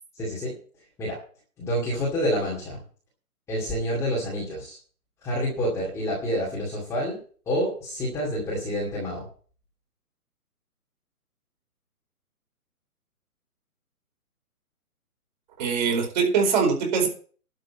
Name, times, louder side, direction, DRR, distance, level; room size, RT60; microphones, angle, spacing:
voice 1, 0.2-0.5 1.0-1.2 1.6-2.8 3.5-4.8 5.2-7.2 7.5-9.3, equal, 5° left, -6 dB, 2.3 m, -28 dB
voice 2, 15.6-17.1, right 5 dB, 30° right, 1 dB, 4.6 m, -22 dB
12.0 x 6.5 x 8.5 m, 0.42 s
hypercardioid pair, 170°, 45 cm